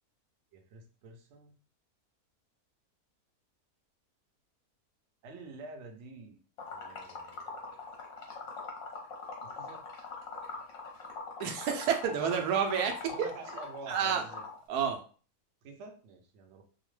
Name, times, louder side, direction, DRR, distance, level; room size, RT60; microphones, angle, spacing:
voice 1, 0.5-1.6 5.2-6.4 6.7-8.0 9.4-9.8 13.1-14.4 15.6-16.6, right 3 dB, 65° right, 3 dB, 0.8 m, -49 dB
Liquid, 6.6-14.6, left 4 dB, 60° left, 1.0 m, -42 dB
voice 2, 11.4-13.3 13.9-14.2 14.7-15.0, right 7 dB, 85° right, 4 dB, 1.1 m, -29 dB
2.8 x 2.0 x 3.1 m, 0.38 s
omnidirectional pair, 1.6 m